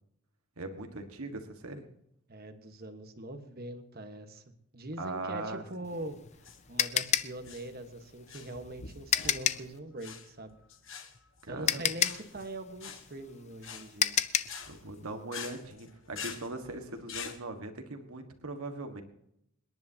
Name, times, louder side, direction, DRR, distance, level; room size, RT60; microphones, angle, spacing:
voice 1, 0.6-1.9 5.0-5.6 11.4-11.9 14.7-19.0, right 2 dB, 90° right, 6 dB, 1.6 m, -40 dB
voice 2, 2.3-4.4 4.7-6.2 6.7-10.6 11.5-14.2, right 1 dB, 45° right, 7 dB, 1.3 m, -42 dB
sound 1, 5.9-9.7 11.2-11.3 11.7-14.6, left 9 dB, 30° left, 0.5 m, -30 dB
sound 2, 6.3-17.4, left 6 dB, 60° left, 1.6 m, -46 dB
27.5 x 10.5 x 2.9 m, 0.75 s
head